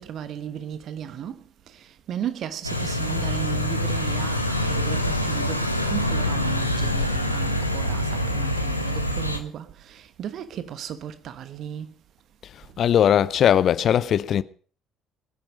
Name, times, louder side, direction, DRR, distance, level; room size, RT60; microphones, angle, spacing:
voice 1, 0.0-1.4 1.7-11.9, right 9 dB, 50° right, 1.3 m, -35 dB
sound 1, 2.6-9.4, left 1 dB, 90° left, 1.1 m, -25 dB
voice 2, 12.8-14.4, left 9 dB, 45° left, 0.6 m, -19 dB
21.0 x 10.5 x 5.2 m
figure-of-eight pair, 50°, 0 cm